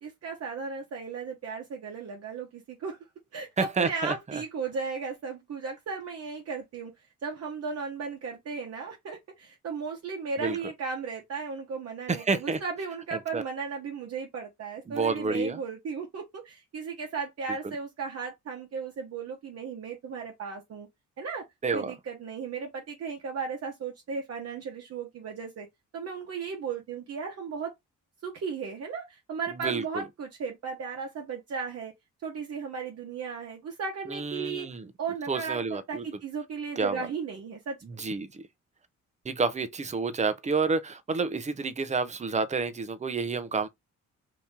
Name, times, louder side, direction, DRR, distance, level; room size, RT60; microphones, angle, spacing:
voice 1, 0.0-3.0 3.3-6.9 7.2-20.9 21.2-21.5 21.7-25.7 25.9-27.7 28.2-31.9 32.2-34.7 35.0-37.8, right 5 dB, 55° right, 1.0 m, -35 dB
voice 2, 3.6-4.4 10.4-10.6 12.1-12.6 13.3-13.4 14.9-15.6 17.6-17.7 21.6-21.9 29.5-30.0 34.1-34.9 35.3-36.0 36.8-37.1 37.8-38.4 39.2-43.7, right 4 dB, 25° right, 0.6 m, -29 dB
2.9 x 2.6 x 3.6 m
cardioid pair, 90°, 30 cm